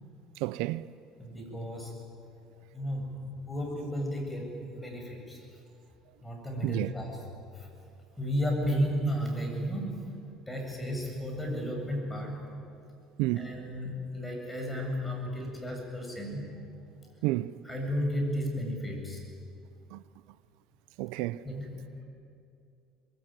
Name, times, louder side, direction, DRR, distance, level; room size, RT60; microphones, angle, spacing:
voice 1, 0.4-0.9 6.6-6.9 13.2-13.5 17.2-17.5 19.9-20.0 21.0-21.4, right 18 dB, 80° right, 0.6 m, -30 dB
voice 2, 1.2-2.1 2.7-5.4 6.2-7.3 7.5-7.7 8.2-10.2 10.5-12.5 13.3-16.6 17.6-19.2 21.4-22.0, equal, 10° left, 7.4 m, -33 dB
24.0 x 22.0 x 9.2 m
cardioid pair, 115°, 0 cm